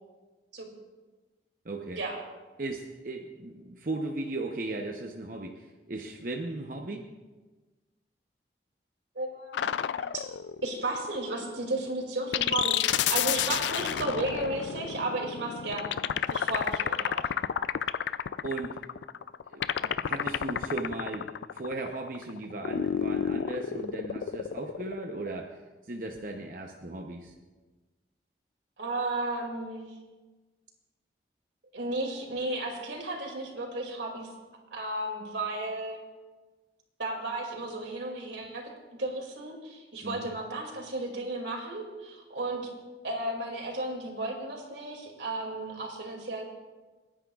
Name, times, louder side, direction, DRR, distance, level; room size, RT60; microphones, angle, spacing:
voice 1, 1.6-2.0 2.6-7.0 18.4-18.8 19.5-25.6 25.9-27.3 40.0-40.3, right 2 dB, 50° right, 1 dB, 0.8 m, -37 dB
voice 2, 9.1-9.6 10.1-10.2 10.6-16.0 16.3-17.3 28.8-29.9 31.7-34.3 34.7-36.0 37.0-38.7 39.0-42.6 43.0-46.4, right 2 dB, 85° right, 1 dB, 2.5 m, -34 dB
sound 1, 9.5-11.7 12.3-25.4, left 9 dB, 80° left, 0.3 m, -30 dB
27.5 x 10.0 x 2.4 m, 1.3 s
head